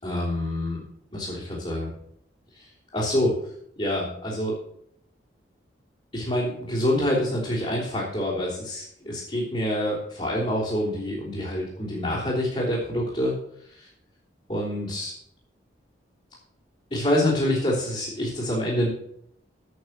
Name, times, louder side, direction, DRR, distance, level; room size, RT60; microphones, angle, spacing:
voice 1, 0.0-0.8 1.1-1.9 2.6-2.7 2.9-3.3 3.8-4.5 6.1-13.3 14.5-15.1 16.9-18.9, left 1 dB, 30° left, -9 dB, 3.5 m, -26 dB
9.6 x 8.2 x 6.1 m, 0.69 s
head